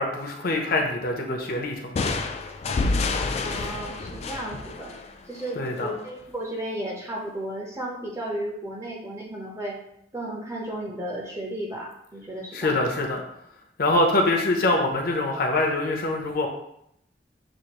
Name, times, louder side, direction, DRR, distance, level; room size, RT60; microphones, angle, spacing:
voice 1, 0.0-2.1 5.6-5.9 12.5-13.2 13.8-16.5, left 2 dB, 55° left, 1 dB, 0.7 m, -24 dB
sound 1, 2.0-5.6, left 3 dB, 35° left, 0.3 m, -28 dB
voice 2, 3.4-4.9 5.3-9.8 10.1-12.8, right 1 dB, 15° right, -1 dB, 0.8 m, -34 dB
6.2 x 2.5 x 2.9 m, 0.75 s
head